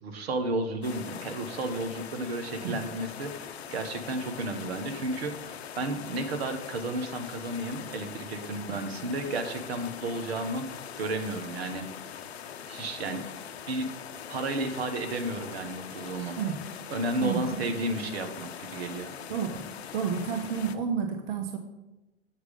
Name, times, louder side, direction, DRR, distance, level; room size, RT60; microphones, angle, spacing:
voice 1, 0.0-10.6 11.0-11.9 12.7-13.3 13.7-13.9 14.3-16.4 16.9-19.1, right 2 dB, 65° right, 7 dB, 1.2 m, -32 dB
sound 1, 0.8-20.8, left 8 dB, 65° left, 0.7 m, -42 dB
voice 2, 16.4-16.7 17.2-17.4 19.3-19.7 19.9-21.6, right 7 dB, 45° right, 6 dB, 0.8 m, -30 dB
8.1 x 4.8 x 5.3 m, 0.98 s
figure-of-eight pair, 105°, 34 cm